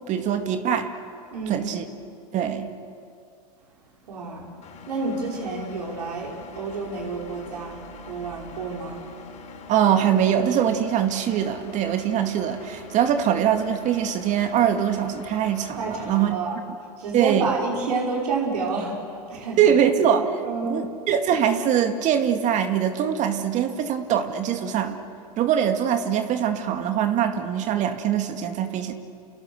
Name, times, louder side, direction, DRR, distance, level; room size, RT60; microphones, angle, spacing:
voice 1, 0.1-0.9 1.5-1.8 2.3-2.7 9.7-16.3 17.1-17.5 19.6-25.0 25.4-28.9, right 9 dB, 35° right, 7 dB, 2.2 m, -23 dB
voice 2, 1.3-1.7 4.1-4.5 4.9-7.8 8.0-9.0 15.8-16.6 17.0-19.8 20.4-20.8, right 4 dB, 75° right, -2 dB, 5.9 m, -29 dB
Engine, 4.6-16.3, left 3 dB, 35° left, 5.9 m, -44 dB
29.5 x 29.0 x 6.7 m, 2.5 s
hypercardioid pair, 105°, 21 cm